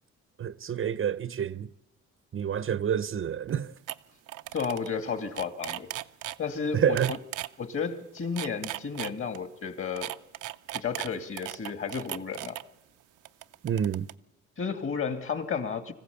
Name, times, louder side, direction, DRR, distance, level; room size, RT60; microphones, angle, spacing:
voice 1, 0.4-1.7 2.3-3.7 6.7-7.1 13.6-14.1, right 8 dB, 45° right, 0.7 m, -28 dB
sound 1, 3.5-3.6 3.9-4.0 4.3-4.9 5.2-6.4 7.0-7.5 8.2-9.4 10.0-12.6 13.3-14.1, right 15 dB, 85° right, 0.7 m, -36 dB
voice 2, 4.5-5.9 6.4-7.2 7.6-10.1 10.7-12.6 14.6-15.9, left 6 dB, 45° left, 2.6 m, -32 dB
25.5 x 15.0 x 8.5 m
cardioid pair, 90°, 30 cm